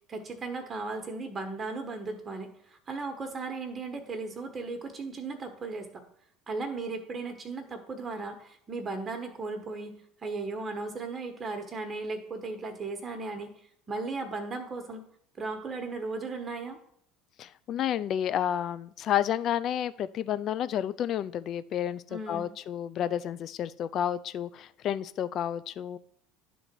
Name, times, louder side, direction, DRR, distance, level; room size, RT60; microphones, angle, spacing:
voice 1, 0.1-6.0 6.5-13.5 13.9-15.0 15.4-16.8 22.1-22.5, right 3 dB, 35° right, 5 dB, 1.2 m, -36 dB
voice 2, 17.4-26.0, left 10 dB, 50° left, 15 dB, 0.4 m, -31 dB
11.0 x 3.9 x 4.6 m, 0.67 s
hypercardioid pair, 70°, 0 cm